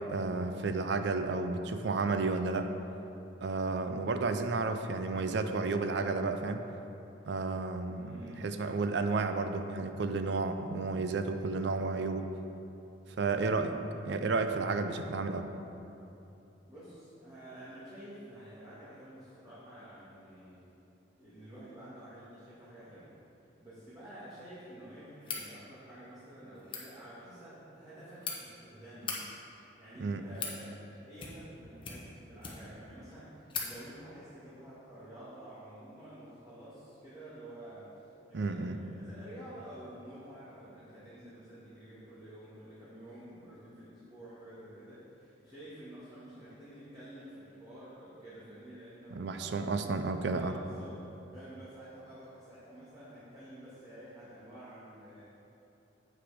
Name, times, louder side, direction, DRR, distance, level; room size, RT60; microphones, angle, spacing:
voice 1, 0.1-2.7 3.4-6.6 7.3-12.3 13.2-13.8 14.1-15.5 30.0-30.2 38.3-38.8 49.1-50.6, right 3 dB, 60° right, 8 dB, 0.4 m, -32 dB
voice 2, 7.8-8.6 16.7-20.6 21.2-23.2 23.6-29.2 29.8-30.8 31.1-55.4, right 1 dB, 20° right, -13 dB, 1.9 m, -50 dB
sound 1, 25.2-25.5 26.6-26.8 27.8-28.4 28.9-29.2 30.0-30.6 31.1-31.5 31.8-32.8 33.1-33.2 33.5-33.7, left 5 dB, 25° left, 0.9 m, -39 dB
7.9 x 5.9 x 5.0 m, 2.9 s
head